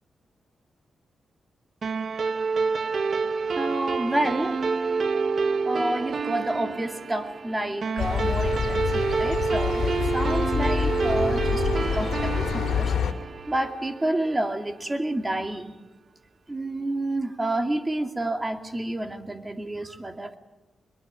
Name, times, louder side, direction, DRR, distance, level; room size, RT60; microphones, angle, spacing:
sound 1, 1.8-14.6, right 4 dB, 55° right, 1.0 m, -28 dB
voice 1, 3.5-4.9 5.7-12.9 13.5-15.7 16.5-20.4, right 1 dB, 20° right, 6 dB, 2.4 m, -29 dB
sound 2, 8.0-13.1, left 7 dB, 85° left, 2.2 m, -27 dB
23.0 x 22.5 x 9.0 m, 1.1 s
cardioid pair, 85°, 0 cm